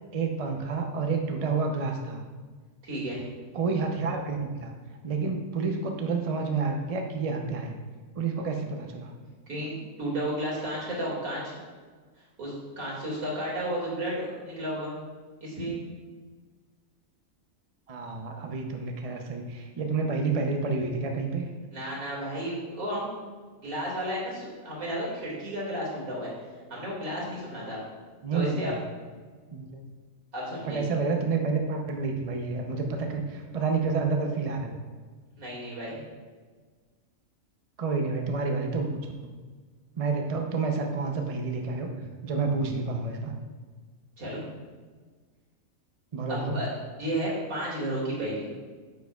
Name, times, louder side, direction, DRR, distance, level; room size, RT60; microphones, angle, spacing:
voice 1, 0.1-2.2 3.5-4.7 5.0-7.7 8.2-9.1 17.9-21.5 28.2-28.7 29.5-29.8 30.7-34.7 37.8-39.0 40.0-41.9 42.2-43.3 46.1-46.6, right 4 dB, 35° right, 3 dB, 0.6 m, -29 dB
voice 2, 2.8-3.2 9.5-11.6 12.4-14.9 15.4-15.8 21.7-23.1 23.6-26.3 26.7-27.8 28.3-28.7 30.3-30.8 35.4-36.1 44.2-44.5 46.3-46.7 47.0-48.5, equal, 80° right, -5 dB, 2.7 m, -32 dB
9.3 x 6.7 x 2.4 m, 1.5 s
omnidirectional pair, 1.5 m